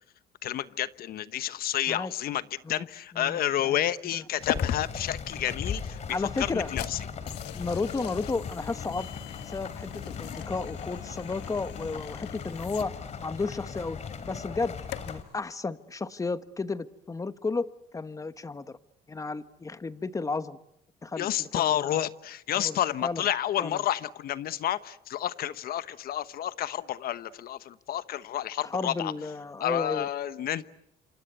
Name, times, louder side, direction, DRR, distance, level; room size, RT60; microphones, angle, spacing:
voice 1, 0.4-6.0 6.4-7.0 21.2-29.1 29.6-30.6, left 12 dB, 60° left, 1.1 m, -30 dB
voice 2, 3.1-3.8 4.0-4.2 6.1-6.7 7.5-9.1 9.4-13.0 13.2-14.0 14.3-14.8 15.0-18.8 19.1-20.6 21.0-22.0 22.5-23.2 23.6-23.8 28.6-30.1, left 3 dB, 20° left, 1.2 m, -33 dB
sound 1, 4.4-15.2, left 6 dB, 40° left, 3.2 m, -38 dB
sound 2, 4.5-15.3, left 12 dB, 85° left, 1.4 m, -41 dB
27.5 x 26.5 x 8.1 m
cardioid pair, 110°, 17 cm